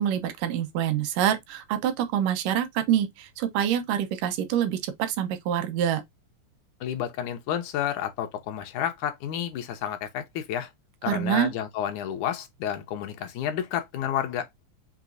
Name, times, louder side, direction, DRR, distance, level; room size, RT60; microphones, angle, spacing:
voice 1, 0.0-6.0 11.1-11.5, right 10 dB, 90° right, 2.6 m, -26 dB
voice 2, 6.8-10.7 11.0-14.5, left 10 dB, 75° left, 2.3 m, -30 dB
6.0 x 2.9 x 2.5 m
omnidirectional pair, 3.6 m